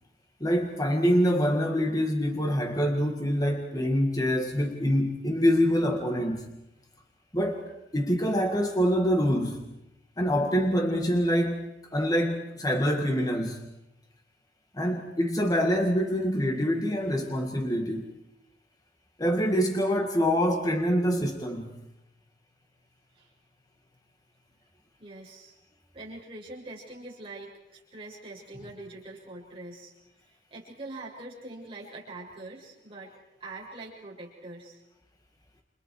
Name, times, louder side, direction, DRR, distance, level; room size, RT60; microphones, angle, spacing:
voice 1, 0.4-6.5 7.3-9.6 10.2-13.7 14.7-18.1 19.2-21.8, equal, 20° left, 3 dB, 1.9 m, -25 dB
voice 2, 25.0-25.6 25.9-29.9 30.5-34.8, right 2 dB, 30° right, -4 dB, 6.9 m, -43 dB
30.0 x 30.0 x 4.8 m, 0.85 s
head